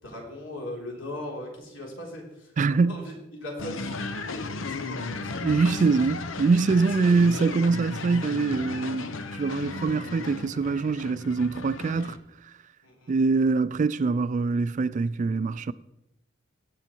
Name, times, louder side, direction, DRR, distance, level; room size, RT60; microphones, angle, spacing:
voice 1, 0.0-3.1 3.4-4.0 4.3-5.8 6.7-7.2 12.8-13.1, left 1 dB, 70° left, 3.6 m, -39 dB
voice 2, 2.6-3.0 5.4-9.1 9.3-12.2 13.1-15.7, right 4 dB, 40° right, 0.3 m, -24 dB
sound 1, 3.6-12.2, left 3 dB, 85° left, 0.9 m, -35 dB
17.0 x 7.1 x 4.5 m
head